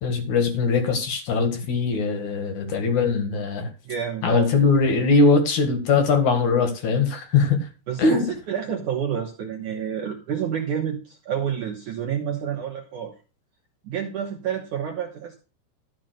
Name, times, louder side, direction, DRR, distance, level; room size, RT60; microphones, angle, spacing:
voice 1, 0.0-3.7 4.2-7.7 8.0-8.3, left 4 dB, 55° left, 2.4 m, -21 dB
voice 2, 3.9-4.5 7.9-13.1 13.8-15.4, right 8 dB, 80° right, 1.7 m, -29 dB
14.0 x 5.4 x 6.6 m
omnidirectional pair, 5.5 m